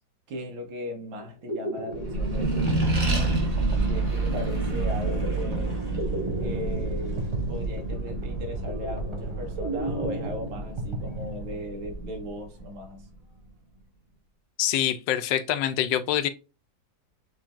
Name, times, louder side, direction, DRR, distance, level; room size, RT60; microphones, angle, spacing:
voice 1, 0.3-3.3 3.8-5.8 6.4-13.1, left 1 dB, 85° right, 2.0 m, -38 dB
sound 1, 1.2-12.0, right 2 dB, 50° right, 0.3 m, -35 dB
Accelerating revving vroom, 1.9-12.8, right 2 dB, 25° right, 0.9 m, -29 dB
voice 2, 14.6-16.3, left 11 dB, 75° left, 1.2 m, -25 dB
6.6 x 3.2 x 2.4 m
omnidirectional pair, 2.1 m